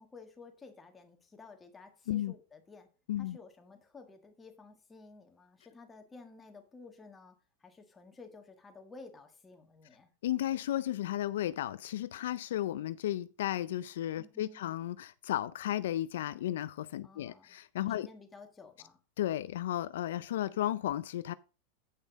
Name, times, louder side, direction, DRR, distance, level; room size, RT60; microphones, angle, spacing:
voice 1, 0.0-2.9 3.2-10.1 14.2-14.6 17.0-17.6 17.9-19.0, left 4 dB, 15° left, 1.6 m, -53 dB
voice 2, 10.2-18.1 19.2-21.3, left 12 dB, 80° left, 0.4 m, -34 dB
8.2 x 5.5 x 5.1 m
supercardioid pair, 130°, 0 cm